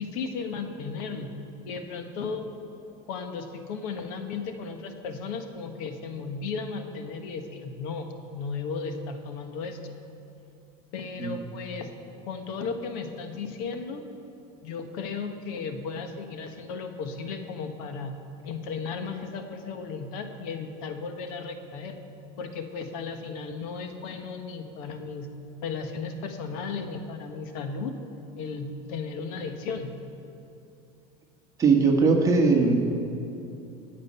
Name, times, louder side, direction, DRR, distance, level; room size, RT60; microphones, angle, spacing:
voice 1, 0.0-1.3 1.6-2.5 3.1-9.8 10.9-11.9 12.3-14.0 14.6-18.1 18.4-22.0 22.4-25.3 25.6-27.9 28.4-29.9, left 5 dB, 70° left, 6 dB, 1.3 m, -35 dB
voice 2, 31.6-32.8, right 4 dB, 15° right, 0 dB, 1.6 m, -20 dB
19.5 x 7.7 x 5.6 m, 2.8 s
cardioid pair, 150°, 19 cm